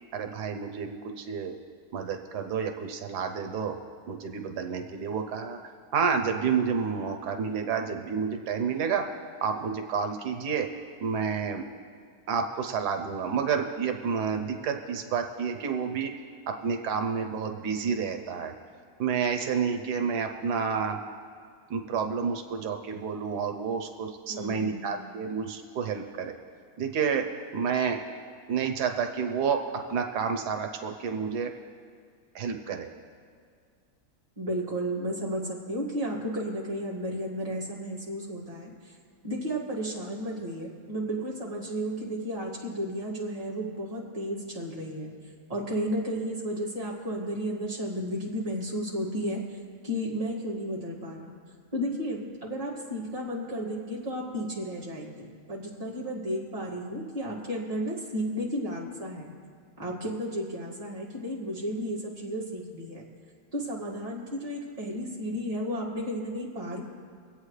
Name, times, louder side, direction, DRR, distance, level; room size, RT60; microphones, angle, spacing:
voice 1, 0.1-1.5 1.9-3.8 4.1-5.6 5.9-9.1 9.4-10.7 11.0-11.6 12.3-16.1 16.5-18.5 19.0-21.0 21.7-26.4 26.8-27.2 27.5-28.0 28.5-29.6 29.9-31.5 32.3-32.9, right 6 dB, 85° right, 5 dB, 1.3 m, -29 dB
voice 2, 24.3-24.8 34.4-38.9 39.2-45.1 45.5-49.6 49.8-51.3 51.7-59.3 59.8-63.0 63.5-66.8, equal, 20° right, -6 dB, 2.1 m, -33 dB
24.5 x 8.4 x 3.2 m, 2.1 s
omnidirectional pair, 1.7 m